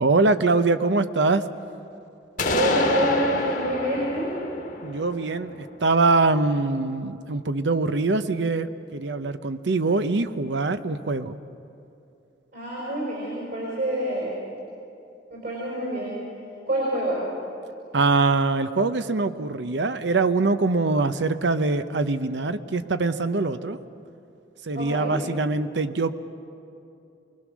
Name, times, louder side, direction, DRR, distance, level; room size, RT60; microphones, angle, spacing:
voice 1, 0.0-1.4 4.8-11.4 17.9-23.8 24.6-26.1, right 3 dB, 75° right, 11 dB, 0.8 m, -23 dB
sound 1, 2.4-6.2, left 3 dB, 50° left, 1.3 m, -29 dB
voice 2, 2.4-4.3 12.5-14.4 15.3-16.2 16.7-17.2 24.7-25.2, right 1 dB, 55° right, -5 dB, 5.4 m, -26 dB
25.0 x 20.0 x 6.2 m, 2.6 s
head